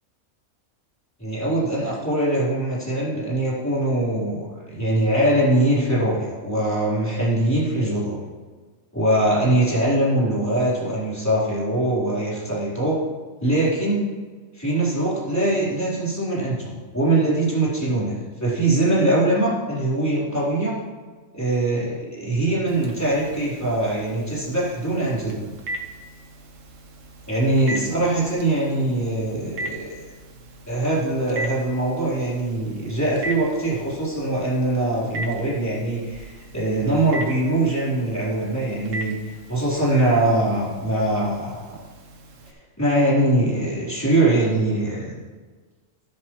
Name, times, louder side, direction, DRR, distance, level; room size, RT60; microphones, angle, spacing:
voice 1, 1.2-8.2 8.9-13.0 13.4-14.1 14.5-20.8 21.3-25.5 27.3-29.9 30.7-41.8 42.8-45.2, right 1 dB, 10° left, -8 dB, 3.9 m, -22 dB
Telephone, 22.7-42.5, right 2 dB, 70° right, 1.4 m, -39 dB
12.5 x 12.0 x 3.2 m, 1.4 s
omnidirectional pair, 1.4 m